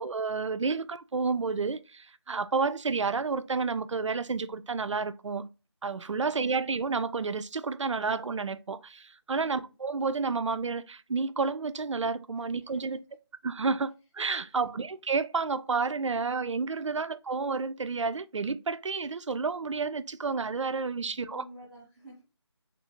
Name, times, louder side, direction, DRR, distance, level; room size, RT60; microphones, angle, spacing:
voice 1, 0.0-5.5 5.8-13.0 13.4-21.4, right 4 dB, 90° right, 0.4 m, -30 dB
voice 2, 6.1-6.6 9.3-9.7 12.7-12.8 16.9-17.0 21.0-22.2, equal, 5° left, 0.7 m, -51 dB
3.6 x 2.5 x 2.8 m
figure-of-eight pair, 160°, 15 cm